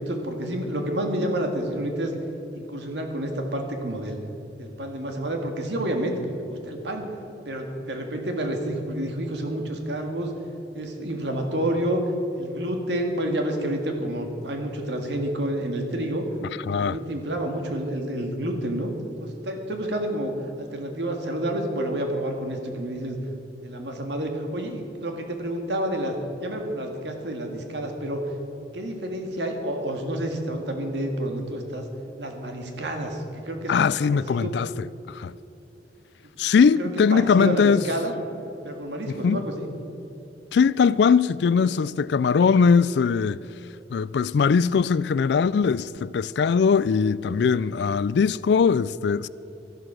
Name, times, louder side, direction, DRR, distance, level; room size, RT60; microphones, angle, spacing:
voice 1, 0.0-2.1 2.5-4.2 4.6-7.1 7.5-10.3 10.7-12.0 12.4-16.3 16.8-18.9 19.2-23.2 23.6-28.2 28.7-31.9 32.2-33.7 34.0-34.5 36.4-38.1 38.6-39.7, right 1 dB, 75° right, 1.9 m, -29 dB
voice 2, 16.7-17.0 33.7-35.3 36.4-37.9 39.2-39.4 40.5-43.4 43.9-49.3, left 6 dB, 65° left, 0.3 m, -21 dB
13.0 x 11.5 x 6.2 m
head